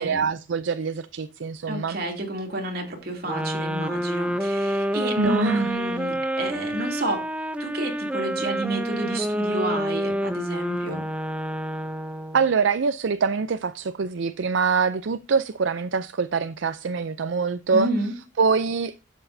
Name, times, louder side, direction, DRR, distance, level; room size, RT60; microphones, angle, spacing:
voice 1, 0.0-2.0 5.2-5.7 12.3-17.9 18.4-18.9, right 5 dB, 70° right, 0.5 m, -24 dB
voice 2, 1.7-7.3 7.6-11.0 17.7-18.1, right 1 dB, 50° right, 2.8 m, -30 dB
sound 1, 3.2-12.5, equal, 5° right, 0.6 m, -28 dB
11.5 x 7.9 x 2.7 m
head